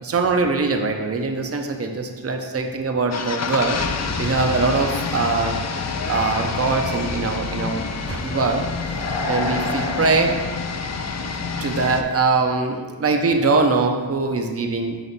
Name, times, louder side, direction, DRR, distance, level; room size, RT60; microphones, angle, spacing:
voice 1, 0.0-3.8 4.2-5.6 6.0-8.7 9.3-10.4 11.6-15.0, right 3 dB, 30° right, 4 dB, 0.6 m, -22 dB
sound 1, 3.1-12.0, left 4 dB, 35° left, 0.4 m, -28 dB
sound 2, 4.5-5.3 5.6-7.2 7.7-8.1 8.4-11.2 11.5-11.9, left 1 dB, 65° left, 1.2 m, -32 dB
5.9 x 3.0 x 5.4 m, 1.4 s
wide cardioid pair, 80°, 47 cm